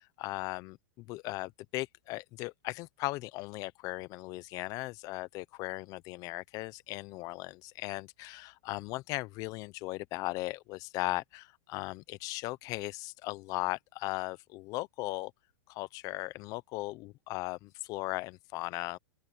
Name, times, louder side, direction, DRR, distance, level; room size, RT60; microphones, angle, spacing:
voice 1, 0.0-15.3 15.7-19.0, left 20 dB, 30° left, 0.7 m, -38 dB
open air
supercardioid pair, 155°, 11 cm